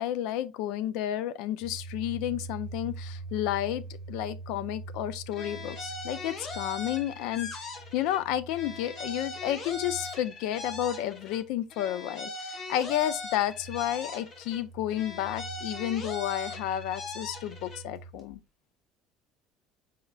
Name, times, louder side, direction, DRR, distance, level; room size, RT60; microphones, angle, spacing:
voice 1, 0.0-3.8 4.1-18.4, left 12 dB, 70° left, 0.4 m, -31 dB
sound 1, 1.6-11.6 12.8-18.4, right 3 dB, 10° right, 1.4 m, -45 dB
sound 2, 5.3-8.2 8.5-11.4 11.7-14.6 14.9-17.8, left 3 dB, 35° left, 0.9 m, -40 dB
4.8 x 4.3 x 2.2 m
cardioid pair, 175°, 0 cm